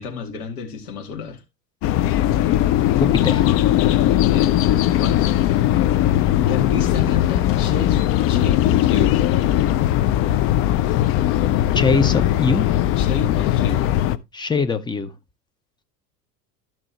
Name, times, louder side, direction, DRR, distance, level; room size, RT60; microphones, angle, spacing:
voice 1, 0.0-1.4 3.9-5.4 5.8-5.9 6.5-8.0 8.3-9.5 13.0-13.9, left 5 dB, 65° left, 2.5 m, -30 dB
sound 1, 1.8-14.2, left 13 dB, 30° left, 0.5 m, -19 dB
voice 2, 3.0-3.5 11.7-12.7 14.3-15.1, left 4 dB, 10° left, 0.8 m, -21 dB
13.5 x 6.0 x 2.9 m
figure-of-eight pair, 75°, 49 cm